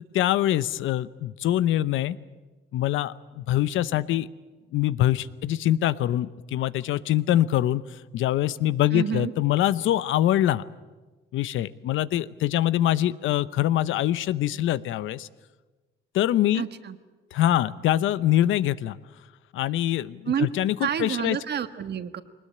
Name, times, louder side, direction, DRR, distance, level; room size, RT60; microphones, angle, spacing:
voice 1, 0.1-2.2 2.7-4.3 4.7-7.8 8.1-10.6 11.3-15.3 16.1-16.6 17.3-19.0 19.5-21.4, left 13 dB, 80° left, 17 dB, 0.8 m, -24 dB
voice 2, 8.9-9.3 16.5-16.9 20.2-20.5 20.8-22.2, right 8 dB, 55° right, 11 dB, 1.5 m, -28 dB
22.0 x 20.0 x 9.7 m, 1.2 s
cardioid pair, 90°, 20 cm